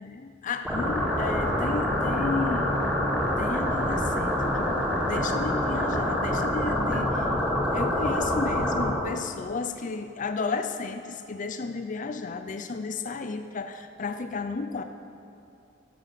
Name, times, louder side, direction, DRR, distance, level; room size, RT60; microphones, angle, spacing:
voice 1, 0.0-2.7 3.4-4.7 5.0-7.3 7.7-14.8, left 4 dB, 45° left, 8 dB, 0.5 m, -33 dB
sound 1, 0.6-8.9, left 1 dB, 10° right, 2.1 m, -26 dB
11.5 x 7.0 x 7.6 m, 2.8 s
head